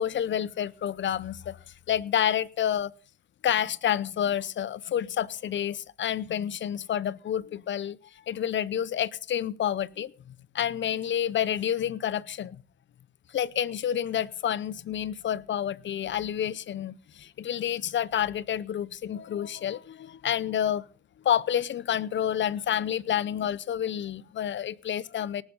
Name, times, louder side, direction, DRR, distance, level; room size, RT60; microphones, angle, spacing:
voice 1, 0.0-1.6 1.9-2.9 3.4-12.6 13.3-20.8 21.2-25.4, left 10 dB, 65° left, 0.7 m, -29 dB
18.5 x 7.2 x 5.3 m
cardioid pair, 75°, 20 cm